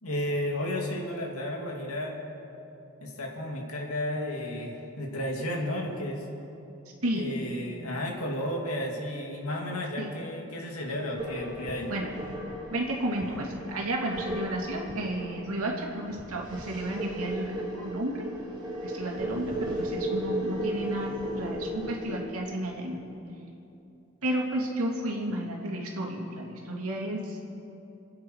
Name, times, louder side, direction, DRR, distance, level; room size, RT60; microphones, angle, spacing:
voice 1, 0.0-2.2 3.0-6.3 7.1-11.9, left 1 dB, 85° left, 0 dB, 2.6 m, -33 dB
sound 1, 11.2-22.2, right 1 dB, 20° right, 2.3 m, -35 dB
voice 2, 11.9-12.2 12.7-18.3 18.8-23.0 24.2-27.4, right 1 dB, 85° right, 0 dB, 2.5 m, -32 dB
28.0 x 9.4 x 4.7 m, 2.9 s
head